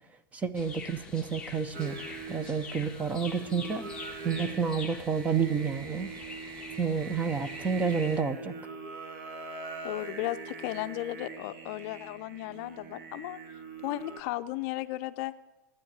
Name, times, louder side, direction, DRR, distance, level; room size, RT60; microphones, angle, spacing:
voice 1, 0.3-2.0 2.3-3.9 4.2-6.1 6.8-8.5, right 6 dB, 15° right, 12 dB, 0.7 m, -29 dB
sound 1, 0.5-8.2, left 4 dB, 5° left, 1.5 m, -45 dB
Singing, 1.7-14.2, right 3 dB, 50° right, 1.9 m, -43 dB
voice 2, 9.8-13.4 13.8-15.3, left 16 dB, 45° left, 11 dB, 0.6 m, -35 dB
13.0 x 9.7 x 8.0 m, 1.0 s
supercardioid pair, 150°, 10 cm